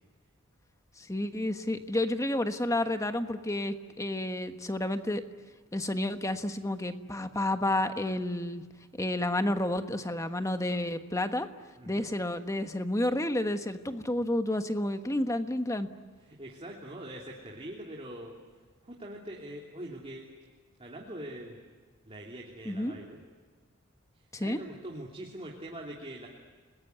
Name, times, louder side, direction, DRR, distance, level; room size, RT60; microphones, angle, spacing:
voice 1, 1.0-5.2 5.7-8.6 9.0-11.5 11.9-15.9 22.6-22.9 24.3-24.6, left 1 dB, 15° left, 8 dB, 1.3 m, -30 dB
voice 2, 11.8-12.1 16.3-18.3 18.8-20.3 20.8-21.6 22.0-23.2 24.4-26.3, right 1 dB, 25° right, -2 dB, 3.0 m, -43 dB
30.0 x 21.0 x 9.5 m, 1.5 s
head